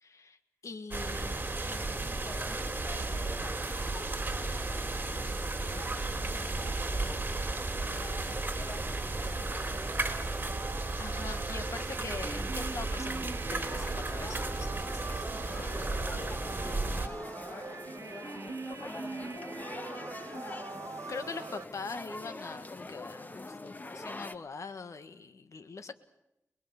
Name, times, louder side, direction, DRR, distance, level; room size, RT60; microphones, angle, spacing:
voice 1, 0.0-0.4 0.6-1.8 10.7-15.3 21.1-26.0, left 4 dB, 75° left, 10 dB, 1.7 m, -43 dB
sound 1, 0.9-17.1, right 2 dB, 35° right, 3.6 m, -34 dB
voice 2, 1.0-10.7 15.2-20.8, left 1 dB, 60° left, -1 dB, 7.1 m, -48 dB
sound 2, 9.7-21.6, right 4 dB, 70° right, 1.7 m, -43 dB
sound 3, 13.7-24.4, left 2 dB, 35° left, 1.4 m, -44 dB
25.0 x 21.5 x 7.2 m, 0.87 s
wide cardioid pair, 75°, 5 cm